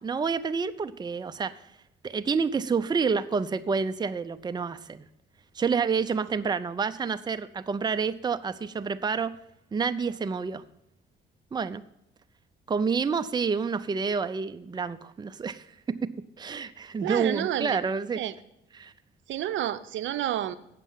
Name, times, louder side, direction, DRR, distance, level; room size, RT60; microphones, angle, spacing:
voice 1, 0.0-1.5 2.0-5.0 5.6-9.3 9.7-10.6 11.5-11.8 12.7-16.0 16.4-18.2 18.7-18.9, right 5 dB, 20° right, 12 dB, 0.5 m, -28 dB
voice 2, 17.0-17.8 18.2-18.3 19.3-20.6, right 12 dB, 75° right, 14 dB, 0.6 m, -29 dB
8.4 x 6.7 x 7.2 m, 0.82 s
cardioid pair, 90°, 20 cm